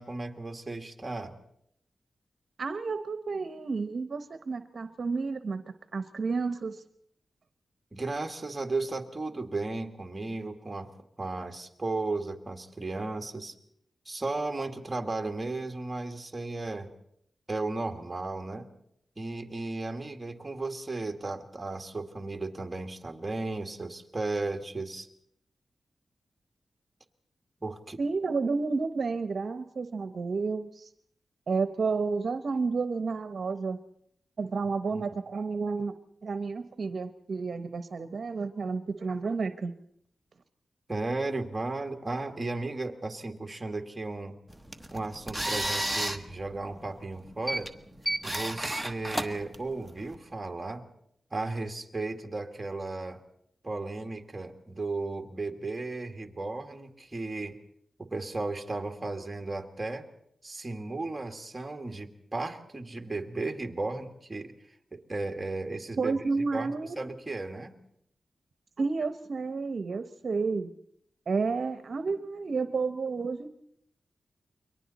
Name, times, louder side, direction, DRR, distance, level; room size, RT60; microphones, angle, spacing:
voice 1, 0.0-1.3 7.9-13.5 14.1-16.9 17.5-18.7 19.2-25.1 27.6-28.0 34.9-35.0 40.9-44.4 44.9-47.7 48.2-50.8 51.3-53.2 53.6-57.6 58.0-60.1 60.4-64.5 64.9-66.2 66.5-66.7 67.0-67.7, right 2 dB, 20° right, 4 dB, 2.0 m, -35 dB
voice 2, 2.6-5.6 5.9-6.8 28.0-30.9 31.5-33.8 34.4-35.9 36.2-39.7 66.0-67.0 68.8-70.7 71.3-73.6, right 4 dB, 60° right, 10 dB, 0.9 m, -31 dB
sound 1, 44.5-50.1, right 1 dB, ahead, 1.2 m, -33 dB
29.5 x 23.0 x 4.1 m, 0.72 s
wide cardioid pair, 100°, 0 cm